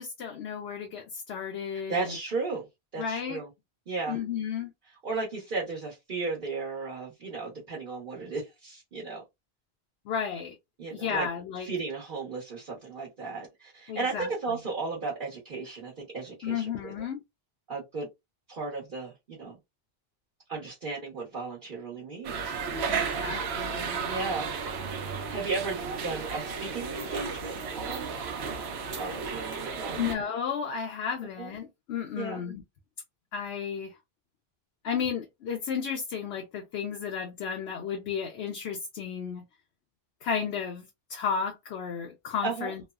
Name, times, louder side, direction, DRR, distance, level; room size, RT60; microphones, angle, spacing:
voice 1, 0.0-2.2 3.0-3.4 4.1-4.7 10.1-10.6 10.9-11.7 13.9-14.3 16.4-17.2 22.9-24.0 30.0-32.6 33.3-34.0 34.8-39.4 40.2-42.8, left 7 dB, 85° left, 0.9 m, -33 dB
voice 2, 1.9-2.7 2.9-3.5 3.9-4.2 5.0-9.2 10.8-11.3 11.6-16.9 17.7-18.1 18.5-19.6 20.5-23.0 24.0-24.5 25.3-28.1 29.0-30.0 31.4-31.5 32.2-32.4 42.4-42.7, right 3 dB, 55° right, 1.1 m, -35 dB
sound 1, 22.2-30.2, right 5 dB, 90° right, 0.9 m, -33 dB
3.1 x 2.0 x 2.3 m
omnidirectional pair, 1.1 m